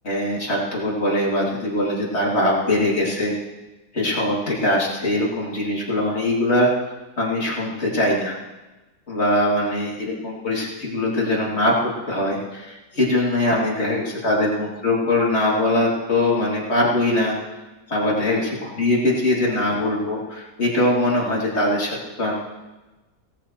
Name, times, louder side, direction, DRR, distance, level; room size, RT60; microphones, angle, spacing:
voice 1, 0.0-3.4 3.9-6.7 7.2-8.4 9.1-17.3 17.9-22.3, left 1 dB, 45° left, -4 dB, 3.3 m, -22 dB
18.0 x 13.5 x 3.2 m, 1.1 s
omnidirectional pair, 1.6 m